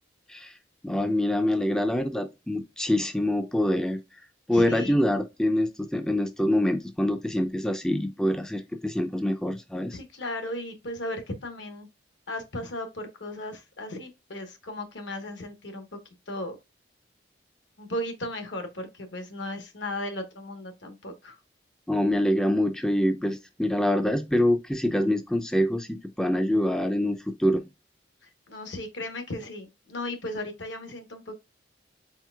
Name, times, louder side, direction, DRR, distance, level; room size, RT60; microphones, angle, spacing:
voice 1, 0.8-4.2 4.5-10.0 21.9-27.6, left 1 dB, 5° left, 0.3 m, -25 dB
voice 2, 4.5-5.0 9.9-11.9 12.3-15.8 16.3-16.6 17.8-21.4 28.2-31.4, left 1 dB, 75° left, 1.0 m, -36 dB
4.4 x 4.0 x 2.3 m
head